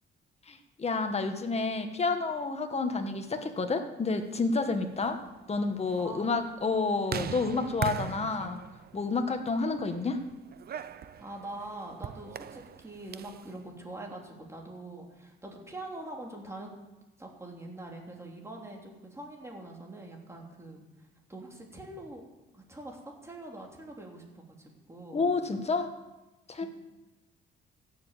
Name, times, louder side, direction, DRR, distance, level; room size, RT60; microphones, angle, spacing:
voice 1, 0.5-5.2 5.5-8.6 8.9-10.2 25.1-25.9 26.5-26.7, left 3 dB, 30° left, 6 dB, 1.6 m, -29 dB
sound 1, 4.4-13.5, right 8 dB, 50° right, 0.7 m, -41 dB
voice 2, 6.0-6.6 11.0-16.7 17.2-22.2 22.5-25.2 26.6-26.7, right 2 dB, 15° right, 0 dB, 3.2 m, -44 dB
15.5 x 7.1 x 7.5 m, 1.1 s
cardioid pair, 90°, 20 cm